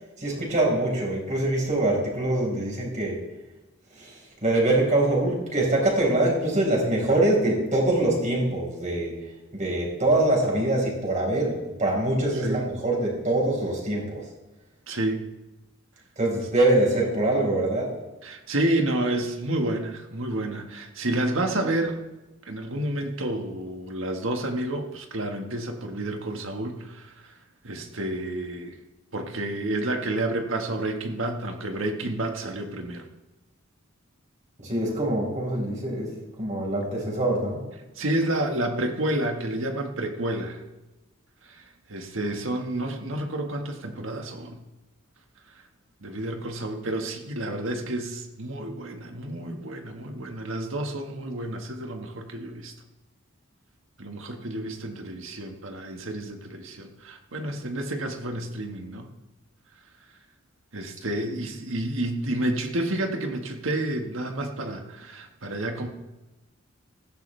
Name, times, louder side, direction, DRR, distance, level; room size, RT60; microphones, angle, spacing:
voice 1, 0.2-3.2 3.9-14.3 16.2-18.0 34.6-37.7, right 1 dB, 40° right, -2 dB, 5.0 m, -24 dB
voice 2, 14.9-15.2 18.2-22.0 22.4-27.3 27.6-28.8 29.1-33.1 38.0-40.6 41.5-44.6 46.0-52.7 54.0-59.1 60.7-65.9, right 1 dB, 75° right, 4 dB, 1.7 m, -30 dB
16.0 x 14.5 x 3.4 m, 1.1 s
head